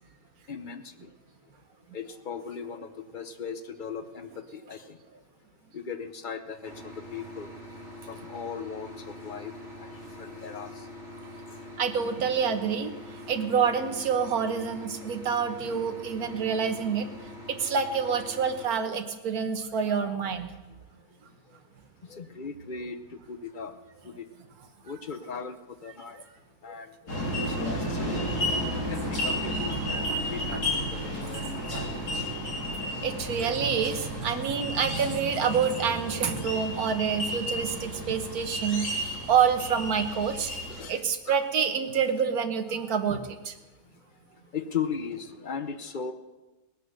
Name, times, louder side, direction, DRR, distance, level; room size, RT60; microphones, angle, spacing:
voice 1, 0.5-1.1 1.9-5.0 5.7-7.5 8.1-9.5 9.8-10.8 19.8-20.2 22.1-23.0 23.3-23.7 24.0-24.3 24.8-26.2 26.6-28.2 28.7-30.0 30.3-32.3 33.4-33.5 34.2-34.4 38.1-38.2 40.7-41.4 44.5-46.1, left 6 dB, 40° left, 9 dB, 0.8 m, -38 dB
sound 1, 6.6-18.7, left 1 dB, 40° right, 3.7 m, -44 dB
voice 2, 11.8-12.9 13.3-17.1 17.5-20.5 31.7-31.9 33.0-40.5 40.9-43.5, right 6 dB, 65° right, 7 dB, 1.6 m, -27 dB
sound 2, 27.1-40.8, equal, 75° left, 4.1 m, -32 dB
19.0 x 9.9 x 6.6 m, 1.1 s
omnidirectional pair, 1.7 m